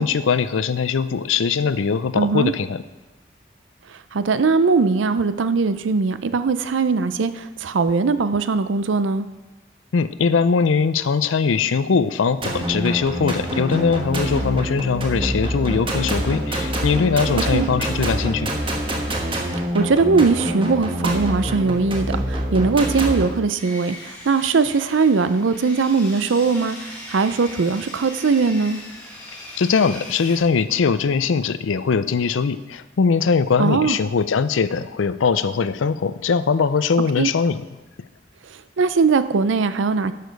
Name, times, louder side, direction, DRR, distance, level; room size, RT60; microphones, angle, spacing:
voice 1, 0.0-2.8 9.9-18.5 29.6-37.6, left 5 dB, 90° left, 14 dB, 0.5 m, -21 dB
voice 2, 2.1-2.5 3.9-9.3 17.5-17.7 19.7-28.8 33.6-34.0 37.2-37.3 38.5-40.1, right 4 dB, 80° right, 13 dB, 0.5 m, -20 dB
sound 1, 12.4-23.3, equal, 25° right, 1.3 m, -25 dB
Sawing, 23.6-30.4, left 1 dB, 10° left, 1.9 m, -39 dB
11.0 x 6.7 x 5.2 m, 1.1 s
head